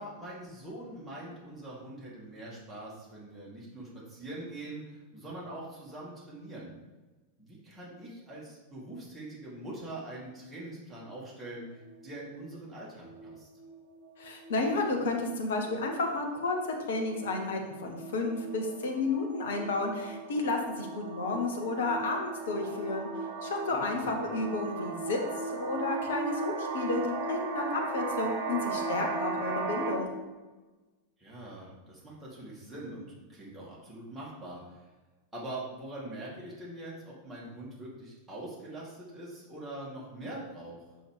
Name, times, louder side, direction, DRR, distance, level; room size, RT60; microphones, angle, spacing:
voice 1, 0.0-6.7 7.4-13.5 23.7-24.2 31.2-34.8 35.3-40.8, right 1 dB, 5° right, -7 dB, 2.1 m, -43 dB
sound 1, 11.6-12.0 12.6-12.8 13.0-13.3 13.6-29.9, right 3 dB, 50° right, 1.3 m, -37 dB
voice 2, 14.2-16.6 16.9-23.1 23.4-30.1, left 3 dB, 60° left, 2 dB, 1.1 m, -32 dB
6.1 x 4.6 x 5.0 m, 1.2 s
figure-of-eight pair, 90°, 0 cm